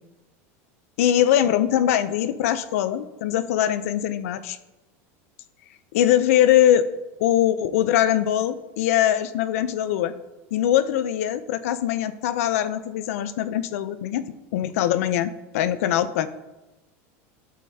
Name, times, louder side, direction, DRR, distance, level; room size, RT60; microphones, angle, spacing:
voice 1, 1.0-4.6 5.9-6.9 7.2-10.1 10.5-14.2 14.5-16.3, left 11 dB, 85° left, 12 dB, 0.6 m, -22 dB
12.0 x 6.5 x 2.8 m, 1.1 s
supercardioid pair, 140°, 8 cm